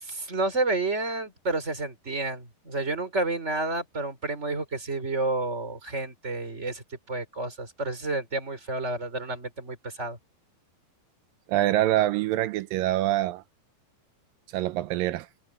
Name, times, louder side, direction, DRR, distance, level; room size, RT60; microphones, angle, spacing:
voice 1, 0.0-10.2, right 2 dB, 15° right, 4.3 m, -30 dB
voice 2, 11.5-13.4 14.5-15.3, right 14 dB, 90° right, 2.0 m, -25 dB
omnidirectional pair, 4.8 m